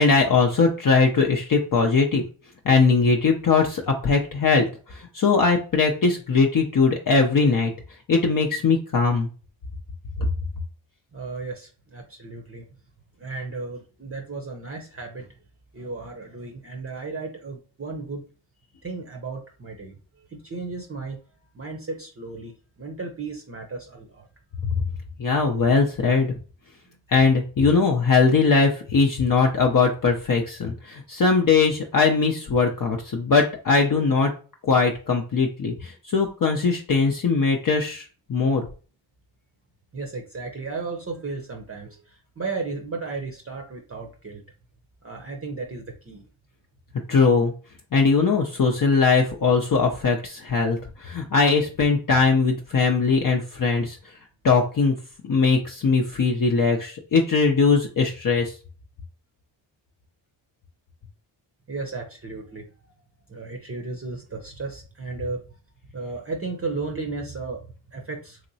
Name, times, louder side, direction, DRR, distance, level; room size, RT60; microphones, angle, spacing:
voice 1, 0.0-2.2 2.6-7.7 8.1-9.3 25.2-26.3 27.1-34.3 34.6-38.7 47.1-47.5 47.9-54.0 54.4-54.9 55.2-58.5, left 4 dB, 40° left, 1 dB, 0.6 m, -20 dB
voice 2, 11.1-12.6 13.2-15.3 15.7-18.3 18.8-21.2 21.5-22.5 22.8-24.3 39.9-44.4 45.0-46.2 61.7-62.9 63.3-65.4 65.9-68.4, right 3 dB, 30° right, 1 dB, 0.6 m, -34 dB
2.9 x 2.8 x 2.7 m, 0.37 s
cardioid pair, 45°, 50 cm